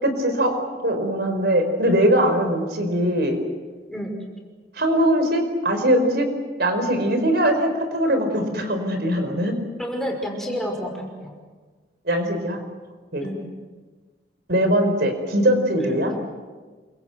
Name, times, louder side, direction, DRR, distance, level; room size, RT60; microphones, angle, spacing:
voice 1, 0.0-0.5 0.8-3.4 4.7-6.3 6.6-9.5 12.0-12.6 13.1-13.3 14.5-16.1, right 1 dB, 65° right, 6 dB, 4.8 m, -21 dB
voice 2, 9.8-11.3 13.2-13.4 15.8-16.0, equal, ahead, 1 dB, 5.6 m, -29 dB
28.5 x 24.5 x 8.0 m, 1.4 s
head